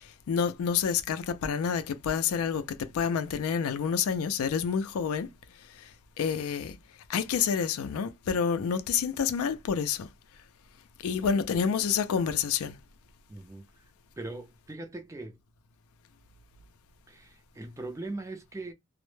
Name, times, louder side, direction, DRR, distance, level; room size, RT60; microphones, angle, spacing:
voice 1, 0.0-5.3 5.8-5.9 6.2-6.8 7.1-10.1 11.0-12.8, left 7 dB, 80° left, 0.4 m, -28 dB
voice 2, 13.3-13.8 14.2-15.4 17.1-18.7, right 2 dB, 15° right, 0.4 m, -40 dB
2.1 x 2.0 x 3.0 m
head